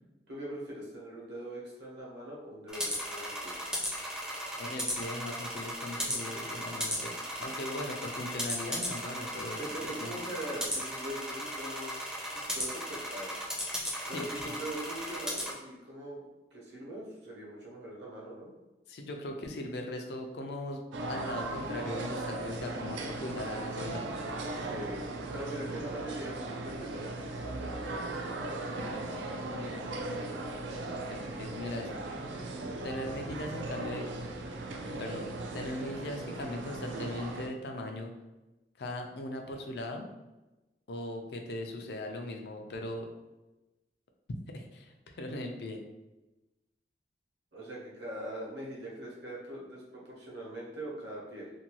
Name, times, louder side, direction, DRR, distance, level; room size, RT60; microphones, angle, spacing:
voice 1, 0.3-3.6 5.9-6.1 9.5-12.0 12.3-13.3 14.1-18.5 24.7-28.7 31.2-31.4 32.6-32.9 47.5-51.5, right 1 dB, 75° right, -4 dB, 0.9 m, -42 dB
sound 1, 2.7-15.5, equal, 5° right, 0.4 m, -36 dB
voice 2, 4.6-10.1 13.9-14.6 18.9-20.8 21.1-24.1 29.5-30.0 31.1-31.9 32.8-34.0 35.0-35.3 35.5-38.1 38.8-40.1 40.9-43.1 44.5-45.8, left 1 dB, 65° left, 3 dB, 0.4 m, -39 dB
sound 2, 20.9-37.5, right 2 dB, 90° right, 0.4 m, -38 dB
2.6 x 2.2 x 2.9 m, 1.0 s
head